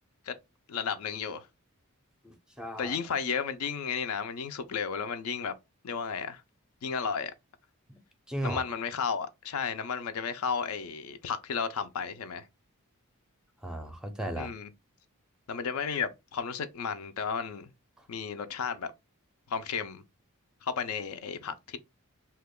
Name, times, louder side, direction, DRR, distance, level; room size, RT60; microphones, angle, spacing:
voice 1, 0.7-1.5 2.8-5.5 5.8-6.4 6.8-7.3 8.4-12.5 14.4-14.7 15.5-17.7 18.1-18.9 19.5-20.0 20.6-21.8, left 6 dB, 70° left, 0.4 m, -33 dB
voice 2, 2.2-3.0 7.9-8.0 8.3-8.6 13.6-14.5, right 1 dB, 5° right, 0.5 m, -36 dB
2.8 x 2.2 x 3.6 m
head